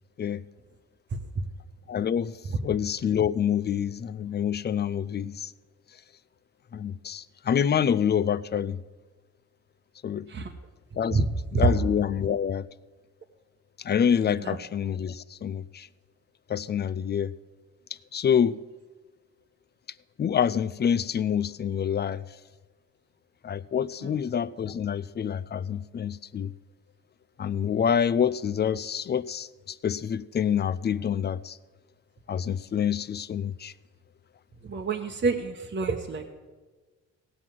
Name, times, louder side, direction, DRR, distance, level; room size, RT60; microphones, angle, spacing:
voice 1, 1.9-2.4 2.6-5.5 6.7-8.8 10.0-10.3 11.0-11.2 11.5-12.7 13.8-15.9 16.5-17.3 18.1-18.6 20.2-22.2 23.4-26.5 27.4-31.6 32.3-33.7, left 8 dB, 35° left, 16 dB, 0.5 m, -27 dB
voice 2, 34.6-36.3, right 4 dB, 40° right, 1 dB, 1.1 m, -27 dB
17.5 x 6.0 x 7.5 m, 1.3 s
cardioid pair, 90°, 30 cm